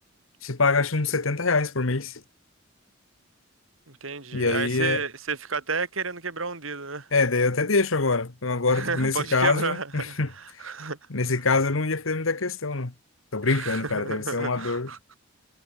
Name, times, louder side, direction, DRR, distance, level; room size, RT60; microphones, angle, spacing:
voice 1, 0.4-2.2 4.3-5.0 7.1-10.3 11.1-12.9 13.3-14.9, left 3 dB, 75° left, 1.5 m, -24 dB
voice 2, 3.9-7.1 8.7-11.0 13.4-15.0, right 4 dB, 70° right, 3.4 m, -32 dB
head